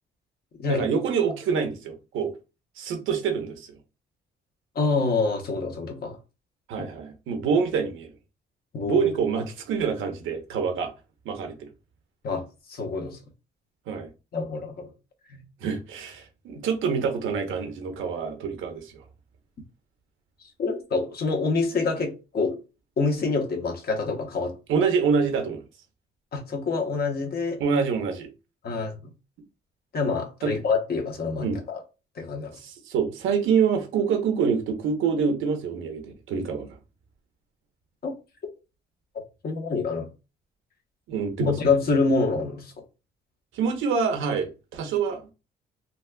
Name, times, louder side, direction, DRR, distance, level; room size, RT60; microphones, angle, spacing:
voice 1, 0.7-2.3 2.8-3.8 6.7-8.1 8.8-10.9 11.2-11.7 13.9-14.1 15.6-19.0 24.7-25.6 27.6-28.3 30.4-30.5 31.4-31.6 32.6-36.7 41.1-41.5 43.5-45.2, right 6 dB, 85° right, 1.0 m, -26 dB
voice 2, 4.7-6.2 6.8-6.9 8.7-9.1 12.2-12.4 12.7-13.2 14.3-14.9 15.3-15.4 20.6-22.6 23.0-24.6 26.3-27.6 28.6-29.0 29.9-31.8 32.2-32.6 38.0-38.1 39.1-40.1 41.4-42.7, left 4 dB, 50° left, 1.1 m, -26 dB
4.0 x 2.4 x 2.2 m
cardioid pair, 90°, 20 cm